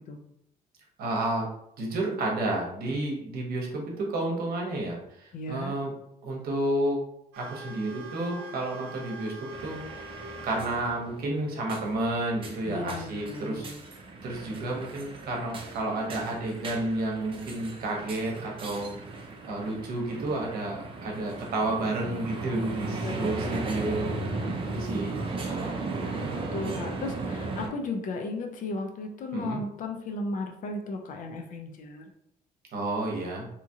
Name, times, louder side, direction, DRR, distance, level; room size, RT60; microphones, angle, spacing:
voice 1, 1.0-1.5 1.8-5.9 6.2-7.0 7.4-9.8 10.4-13.7 14.2-18.9 19.5-25.1 25.5-26.1 29.3-29.6 32.7-33.5, right 2 dB, 60° right, -1 dB, 0.9 m, -31 dB
voice 2, 5.3-5.7 12.6-13.8 22.9-24.7 26.5-32.0, left 2 dB, 50° left, 4 dB, 0.5 m, -36 dB
sound 1, 7.3-10.6 10.9-11.0 11.8-12.1 14.3-14.4 15.0-15.1, right 2 dB, 90° right, 0.6 m, -43 dB
sound 2, 9.5-27.7, right 3 dB, 30° right, 0.5 m, -36 dB
2.8 x 2.4 x 2.7 m, 0.77 s
cardioid pair, 110°, 17 cm